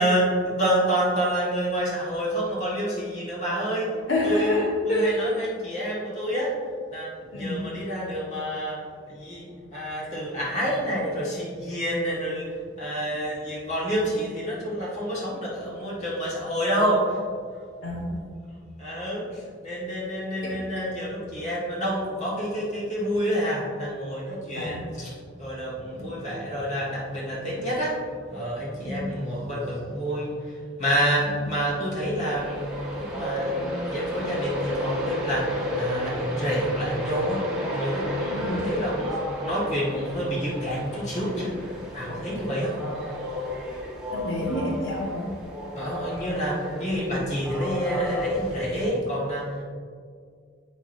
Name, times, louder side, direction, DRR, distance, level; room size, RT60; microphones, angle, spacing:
voice 1, 0.0-3.9 4.2-6.5 6.9-8.8 9.1-12.5 12.8-17.2 18.8-32.6 33.0-42.8 45.7-49.6, equal, 40° left, -6 dB, 1.7 m, -28 dB
voice 2, 4.1-5.2 7.3-7.6 17.8-18.1 20.4-20.6 24.5-24.8 25.9-26.0 28.8-29.1 38.3-38.6 44.1-45.3, left 1 dB, 75° left, -5 dB, 1.5 m, -27 dB
Train, 32.3-48.9, left 1 dB, 5° right, 1.2 m, -32 dB
7.9 x 5.9 x 2.7 m, 2.1 s
head